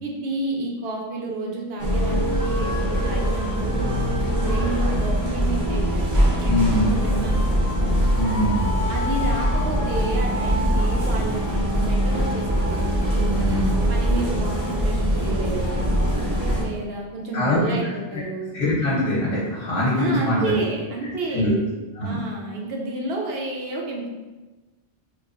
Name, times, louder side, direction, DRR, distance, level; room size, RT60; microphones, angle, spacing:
voice 1, 0.0-3.9 4.4-7.7 8.9-12.8 13.1-15.8 16.6-18.5 20.0-21.5 22.0-24.1, right 2 dB, 65° right, -1 dB, 0.8 m, -30 dB
sound 1, 1.8-16.6, equal, 25° right, 0.4 m, -22 dB
voice 2, 6.4-7.0 8.1-8.8 13.3-13.7 16.5-16.7 17.3-17.9 18.5-20.5 21.3-21.6 21.9-22.2, left 1 dB, 65° left, -9 dB, 1.1 m, -23 dB
3.5 x 2.9 x 2.5 m, 1.2 s
omnidirectional pair, 1.2 m